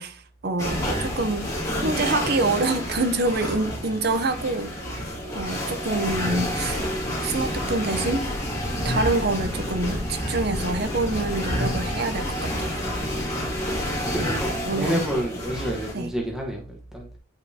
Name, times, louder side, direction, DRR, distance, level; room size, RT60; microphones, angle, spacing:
voice 1, 0.0-1.5 1.8-4.7 5.3-6.8 7.2-8.2 8.8-12.8 14.2-14.3 14.6-15.1 15.9-16.1, right 2 dB, 50° right, 0.6 m, -26 dB
sound 1, 0.6-15.9, equal, 15° left, 1.9 m, -29 dB
voice 2, 14.1-17.1, equal, ahead, 1.1 m, -29 dB
8.8 x 5.3 x 2.8 m
head